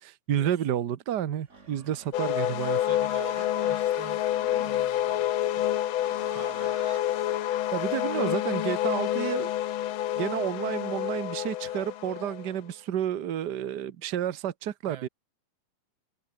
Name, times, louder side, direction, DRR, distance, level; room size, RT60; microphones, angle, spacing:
voice 1, 0.0-2.8 7.7-9.5 10.2-15.1, right 10 dB, 85° right, 0.9 m, -30 dB
Livestock farm animals working animals, 1.4-7.1, right 4 dB, 25° right, 2.6 m, -50 dB
sound 1, 2.1-12.5, left 12 dB, 85° left, 1.1 m, -28 dB
voice 2, 2.7-4.2 4.6-5.3 5.6-5.7 6.0-6.8 14.9-15.1, right 8 dB, 50° right, 2.0 m, -45 dB
omnidirectional pair, 3.5 m